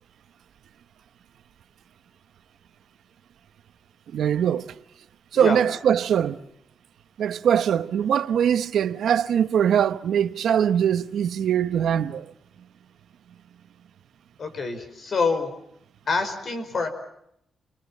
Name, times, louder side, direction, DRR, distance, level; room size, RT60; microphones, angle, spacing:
voice 1, 4.1-4.7 5.3-6.4 7.2-12.3, right 9 dB, 85° right, 1.0 m, -22 dB
voice 2, 14.4-15.5 16.1-16.9, left 4 dB, 45° left, 4.7 m, -26 dB
29.5 x 23.5 x 7.4 m
wide cardioid pair, 170°, 0 cm